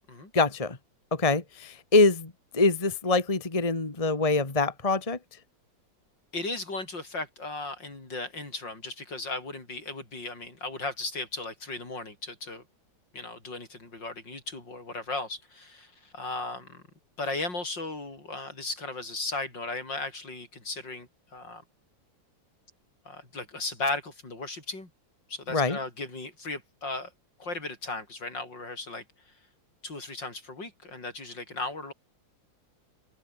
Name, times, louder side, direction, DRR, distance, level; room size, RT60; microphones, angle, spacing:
voice 1, 0.3-0.8 1.1-5.2 25.5-25.8, left 3 dB, 20° left, 1.9 m, -24 dB
voice 2, 6.3-12.6 13.1-16.8 17.2-21.6 23.1-24.9 25.3-27.1 27.4-29.0 29.8-31.9, left 2 dB, 65° left, 6.9 m, -36 dB
open air
omnidirectional pair, 2.1 m